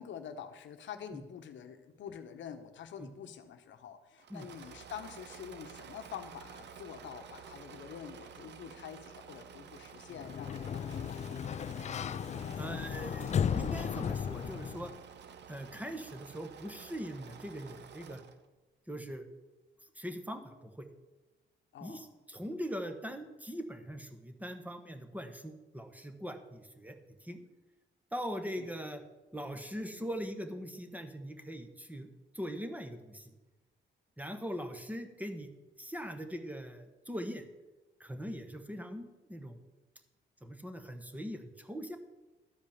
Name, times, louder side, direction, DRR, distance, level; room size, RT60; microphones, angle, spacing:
voice 1, 0.0-11.7 21.7-22.1 28.6-28.7, left 8 dB, 70° left, 8 dB, 0.9 m, -47 dB
Engine / Mechanisms, 4.2-18.4, right 7 dB, 60° right, 0.8 m, -51 dB
Sliding door, 10.1-15.0, left 8 dB, 35° left, 0.3 m, -35 dB
voice 2, 12.6-14.9 15.5-18.2 18.9-19.3 20.0-20.9 21.8-27.4 28.1-29.0 29.3-33.3 34.2-35.5 35.8-37.4 38.0-39.6 40.4-42.0, equal, 10° right, 6 dB, 1.1 m, -41 dB
12.0 x 5.0 x 7.1 m, 1.1 s
cardioid pair, 90°, 20 cm